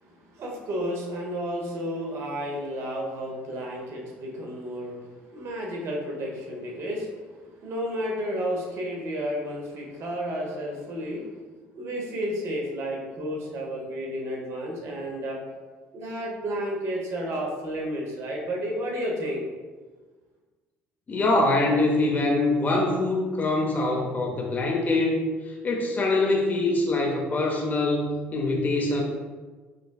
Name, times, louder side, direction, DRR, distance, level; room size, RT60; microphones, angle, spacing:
voice 1, 0.0-11.4 11.7-15.4 15.9-19.5, equal, 60° right, -1 dB, 0.9 m, -32 dB
voice 2, 21.1-25.2 25.6-29.0, left 2 dB, 35° left, 0 dB, 0.6 m, -24 dB
5.0 x 2.3 x 2.3 m, 1.4 s
supercardioid pair, 80°, 5 cm